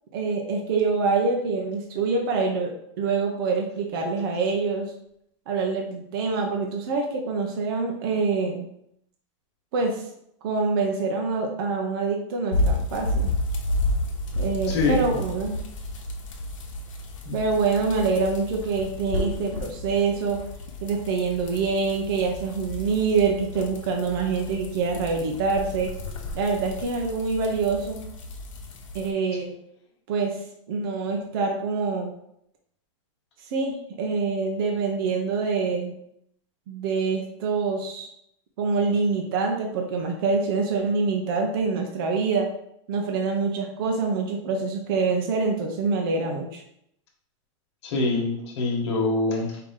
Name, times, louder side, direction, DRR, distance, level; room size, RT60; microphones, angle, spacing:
voice 1, 0.1-4.9 5.5-8.7 9.7-10.1 10.4-13.3 14.4-15.6 17.3-20.4 20.8-25.9 26.3-28.0 28.9-29.5 30.1-30.3 30.7-32.1 33.5-35.9 36.7-38.1 38.6-42.5 42.9-46.6, right 4 dB, 45° right, 1 dB, 0.7 m, -25 dB
sound 1, 12.5-29.1, left 1 dB, 80° left, 1.0 m, -31 dB
voice 2, 14.7-15.2 17.2-17.4 47.8-49.6, left 3 dB, 60° left, 0 dB, 1.4 m, -25 dB
4.8 x 2.8 x 3.6 m, 0.73 s
supercardioid pair, 170°, 16 cm